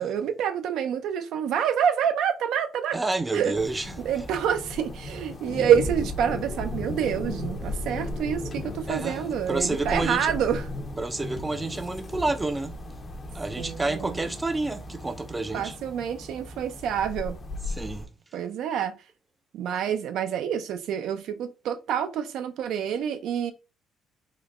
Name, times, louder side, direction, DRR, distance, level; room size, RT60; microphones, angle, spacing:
voice 1, 0.0-3.0 3.3-3.5 4.0-10.6 13.6-14.2 15.5-17.4 18.3-18.9 19.5-23.5, right 8 dB, 70° right, 0.5 m, -27 dB
voice 2, 2.9-4.0 8.9-10.3 11.0-12.8 13.3-15.8 17.7-18.1, right 2 dB, 15° right, 0.4 m, -29 dB
sound 1, 3.5-18.1, left 2 dB, 30° left, 0.7 m, -36 dB
3.7 x 2.2 x 3.5 m
cardioid pair, 120°, 0 cm